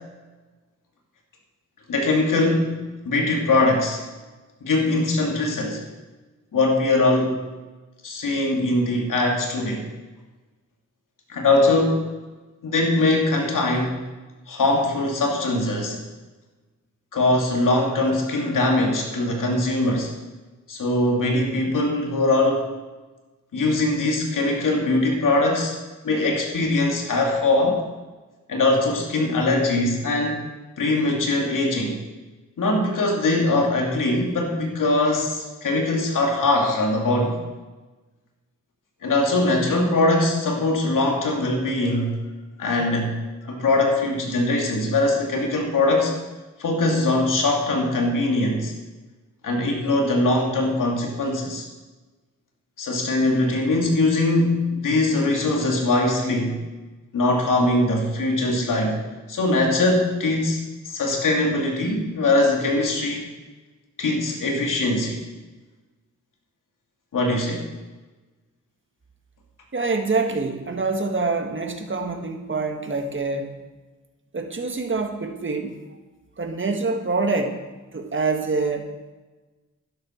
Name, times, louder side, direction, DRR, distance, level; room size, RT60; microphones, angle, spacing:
voice 1, 1.9-2.8 3.0-4.0 4.6-5.9 6.5-7.4 8.0-9.9 11.3-12.1 12.6-14.0 14.5-16.0 17.1-20.1 20.7-22.6 23.5-25.8 26.0-27.8 28.5-30.5 30.8-32.0 32.6-37.4 39.0-42.2 42.6-43.1 43.4-46.1 46.6-48.7 49.4-51.6 52.8-56.6 57.1-59.0 59.3-63.3 64.0-65.2 67.1-67.7, left 2 dB, 85° left, 1 dB, 2.4 m, -21 dB
voice 2, 69.7-73.5 74.3-75.8 76.4-77.6 77.9-78.9, right 3 dB, 40° right, 5 dB, 1.6 m, -25 dB
12.0 x 11.5 x 4.4 m, 1.2 s
cardioid pair, 70°, 31 cm